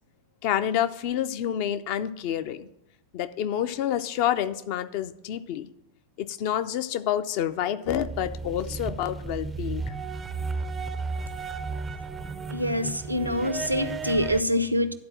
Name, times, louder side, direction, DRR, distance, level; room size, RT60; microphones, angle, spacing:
voice 1, 0.4-2.7 3.1-5.7 6.2-9.8, left 10 dB, 45° left, 12 dB, 0.5 m, -28 dB
sound 1, 7.9-14.4, right 4 dB, 15° right, 0.4 m, -34 dB
voice 2, 12.5-14.9, left 1 dB, 90° right, 11 dB, 0.6 m, -25 dB
11.0 x 4.1 x 7.4 m, 0.80 s
figure-of-eight pair, 90°, 0 cm